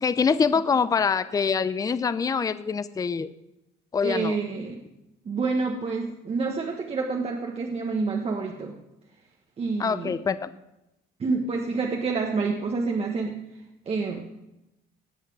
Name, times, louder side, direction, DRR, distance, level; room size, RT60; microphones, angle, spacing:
voice 1, 0.0-3.3 3.9-4.4 9.8-10.5, left 5 dB, 20° left, 14 dB, 0.5 m, -24 dB
voice 2, 4.0-4.8 5.2-8.7 9.6-10.2 11.2-13.4 13.9-14.3, right 4 dB, 35° right, 1 dB, 1.2 m, -28 dB
17.5 x 5.8 x 6.1 m, 0.93 s
cardioid pair, 110°, 17 cm